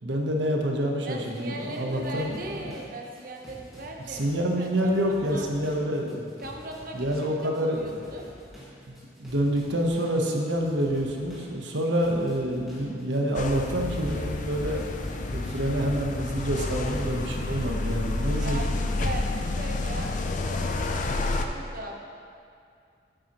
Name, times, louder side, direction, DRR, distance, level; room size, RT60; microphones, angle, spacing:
voice 1, 0.0-2.7 4.1-6.3 6.9-8.0 8.9-9.0 9.2-14.8 15.3-18.6, equal, 80° right, 1 dB, 1.0 m, -27 dB
voice 2, 1.0-5.5 6.4-8.2 17.3-17.4 17.9-18.0 18.4-22.0, right 1 dB, 50° right, 1 dB, 0.9 m, -39 dB
sound 1, 1.3-20.3, equal, ahead, 1.9 m, -48 dB
sound 2, 13.3-21.5, left 2 dB, 45° left, 0.5 m, -29 dB
9.0 x 8.9 x 3.0 m, 2.4 s
head